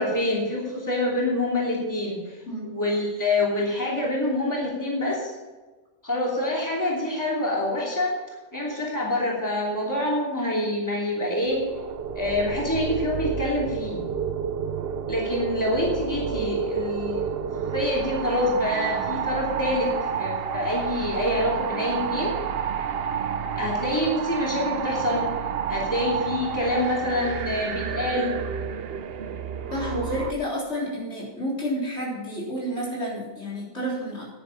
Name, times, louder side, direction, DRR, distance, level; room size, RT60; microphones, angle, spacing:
voice 1, 0.0-5.3 6.0-8.2 8.5-11.6 12.1-14.0 15.1-17.3 17.7-19.9 20.2-22.4 23.6-25.3 25.7-28.3, left 1 dB, 15° left, -4 dB, 3.0 m, -26 dB
sound 1, 11.4-30.3, right 7 dB, 60° right, 0.9 m, -30 dB
voice 2, 29.7-34.3, equal, 70° left, -4 dB, 4.1 m, -30 dB
10.0 x 10.0 x 5.9 m, 1.3 s
omnidirectional pair, 1.2 m